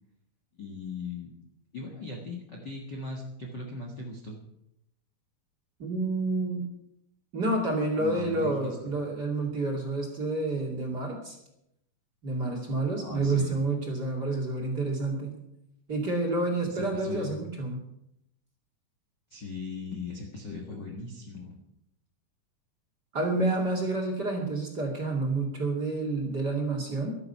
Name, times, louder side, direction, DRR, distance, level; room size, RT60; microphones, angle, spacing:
voice 1, 0.5-1.3 1.7-4.4 8.0-8.8 13.0-13.5 16.6-17.4 19.3-21.5, left 3 dB, 40° left, 0 dB, 1.6 m, -39 dB
voice 2, 5.8-6.6 7.3-11.4 12.2-15.4 15.9-17.8 23.1-27.1, right 2 dB, 30° right, -1 dB, 2.5 m, -29 dB
14.0 x 12.5 x 5.6 m, 0.80 s
omnidirectional pair, 4.3 m